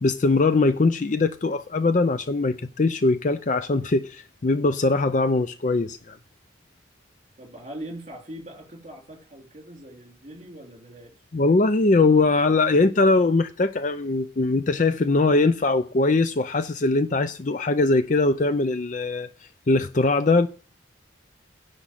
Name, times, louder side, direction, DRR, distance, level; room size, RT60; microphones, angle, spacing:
voice 1, 0.0-6.2 11.3-19.3 19.7-20.5, left 3 dB, 40° left, 0.5 m, -21 dB
voice 2, 7.4-11.2, right 1 dB, 35° right, 3.3 m, -41 dB
10.0 x 5.1 x 7.5 m
head